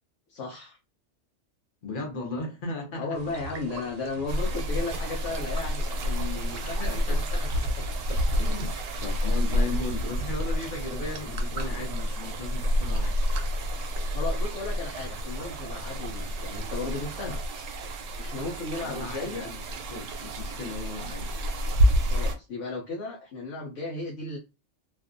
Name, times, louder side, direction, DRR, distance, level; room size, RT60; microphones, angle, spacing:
voice 1, 0.3-0.8 2.9-7.2 14.1-17.4 18.2-19.5 22.1-24.4, left 3 dB, 75° left, 0.9 m, -35 dB
voice 2, 1.8-3.2 6.6-13.2 18.8-19.6 19.9-21.3, left 2 dB, 50° left, 0.9 m, -37 dB
sound 1, 3.1-17.4, right 4 dB, 60° right, 0.7 m, -46 dB
sound 2, 4.3-22.3, equal, 85° right, 1.0 m, -29 dB
2.5 x 2.3 x 2.5 m
omnidirectional pair, 1.3 m